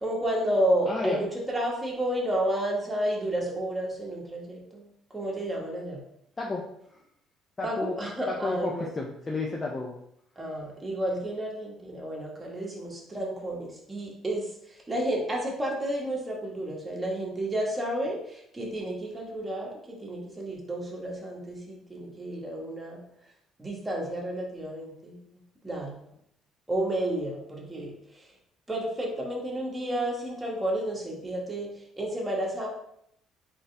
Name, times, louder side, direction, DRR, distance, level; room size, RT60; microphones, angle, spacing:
voice 1, 0.0-6.0 7.6-8.9 10.3-23.0 23.6-25.2 25.6-26.1 26.7-28.3 28.7-32.7, right 1 dB, 20° right, -2 dB, 1.6 m, -31 dB
voice 2, 0.8-1.2 6.4-7.0 7.6-8.0 8.3-10.0, left 3 dB, 30° left, -1 dB, 0.7 m, -32 dB
4.0 x 3.6 x 3.4 m, 0.74 s
supercardioid pair, 80°, 0 cm